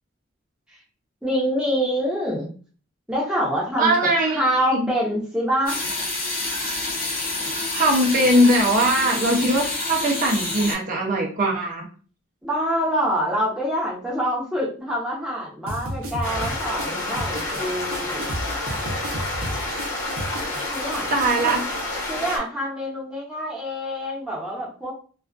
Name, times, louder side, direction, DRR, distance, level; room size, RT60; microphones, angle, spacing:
voice 1, 1.2-2.5 3.1-3.9 4.2-5.8 12.4-18.3 20.7-21.1 21.4-21.5 22.1-24.9, equal, 5° right, -5 dB, 0.7 m, -26 dB
voice 2, 3.8-4.4 4.7-4.8 7.7-11.9 21.1-21.6, right 1 dB, 40° right, -1 dB, 0.5 m, -20 dB
sound 1, 5.7-10.7, left 2 dB, 45° left, 0.7 m, -28 dB
sound 2, 15.7-21.6, right 1 dB, 80° right, 0.6 m, -33 dB
sound 3, 16.2-22.4, left 2 dB, 75° left, 0.8 m, -29 dB
2.3 x 2.3 x 2.4 m, 0.40 s
head